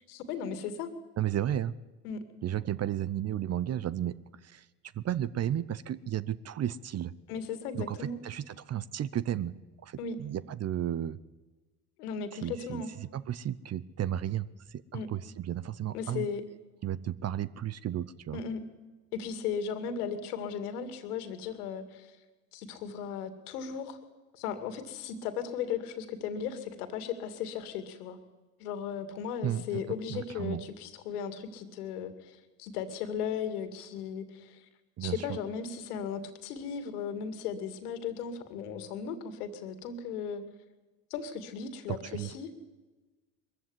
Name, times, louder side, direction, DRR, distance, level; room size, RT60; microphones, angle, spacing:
voice 1, 0.1-0.9 2.0-2.2 7.3-8.2 10.0-10.2 12.0-12.9 14.9-15.1 15.9-16.4 18.3-18.6 19.1-22.1 22.5-24.0 24.3-28.2 28.6-34.7 35.0-40.4 41.1-42.5, left 7 dB, 70° left, 10 dB, 2.3 m, -36 dB
voice 2, 1.2-1.7 2.4-4.2 4.4-4.7 4.9-7.1 7.7-9.5 9.8-11.2 12.4-16.3 16.8-18.4 29.4-30.6 35.0-35.3 41.9-42.3, right 11 dB, 30° right, 19 dB, 0.8 m, -33 dB
22.0 x 14.5 x 9.7 m, 1.2 s
figure-of-eight pair, 65°, 47 cm